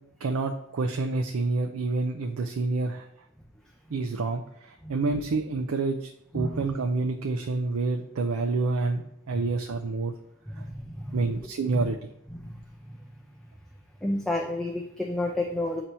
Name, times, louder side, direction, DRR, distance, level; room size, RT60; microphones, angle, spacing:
voice 1, 0.2-3.1 3.9-10.1 11.1-12.0, right 3 dB, 85° right, 5 dB, 0.5 m, -28 dB
voice 2, 4.8-5.2 6.3-6.6 9.3-9.5 10.5-11.4 11.7-11.9 12.3-13.3 14.0-15.8, left 1 dB, ahead, 0 dB, 0.5 m, -32 dB
8.6 x 2.9 x 5.4 m, 0.80 s
head